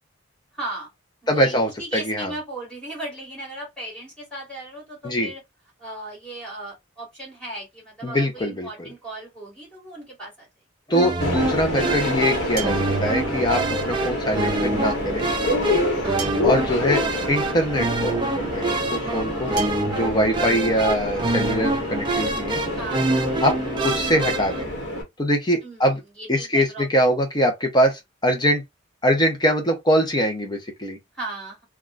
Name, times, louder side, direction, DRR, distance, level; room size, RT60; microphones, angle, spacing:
voice 1, 0.5-0.9 1.2-5.4 5.8-10.5 11.8-12.0 16.0-16.4 22.8-23.3 25.6-25.8 26.2-26.8 31.1-31.6, right 2 dB, 5° left, 2.0 m, -37 dB
voice 2, 1.3-2.3 5.0-5.3 8.0-8.9 10.9-15.3 16.4-19.6 19.9-22.6 23.4-23.6 23.8-24.7 25.2-26.0 26.3-28.6 29.0-31.0, equal, 20° left, 0.7 m, -23 dB
sound 1, 10.8-10.9 12.6-13.1 14.6-14.7 16.2-16.6 17.8-17.9 19.6-19.7, right 6 dB, 50° right, 0.9 m, -33 dB
sound 2, 10.9-24.6, right 2 dB, 25° right, 0.4 m, -26 dB
Subway metro underground, 11.2-25.0, left 1 dB, 65° left, 1.1 m, -28 dB
3.4 x 2.3 x 2.5 m
head